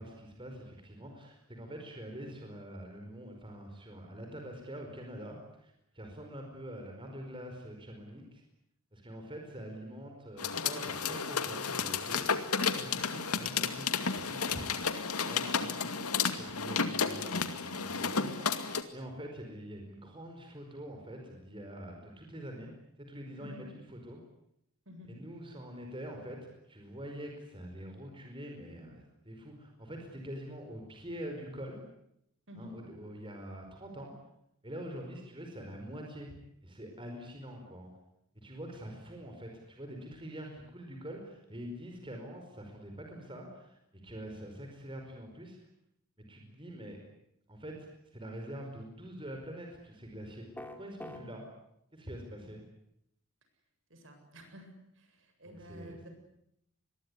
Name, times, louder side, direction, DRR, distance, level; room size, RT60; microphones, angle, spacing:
voice 1, 0.0-8.4 8.9-14.6 15.2-15.9 16.4-18.6 18.9-22.7 23.0-24.2 25.1-31.8 32.6-34.1 34.6-36.3 36.6-37.9 38.3-45.6 46.3-47.0 47.5-50.5 50.8-51.4 51.9-52.6 55.4-56.1, equal, 25° right, 2 dB, 4.9 m, -45 dB
sound 1, 10.4-18.8, left 5 dB, 85° left, 2.3 m, -32 dB
voice 2, 32.5-32.8 42.0-42.1 51.1-51.3 52.4-52.5 53.9-54.7 55.0-56.1, left 1 dB, 60° right, 5 dB, 7.7 m, -50 dB
sound 2, 50.6-51.2, left 1 dB, 10° left, 3.1 m, -43 dB
26.5 x 22.0 x 9.9 m, 0.77 s
head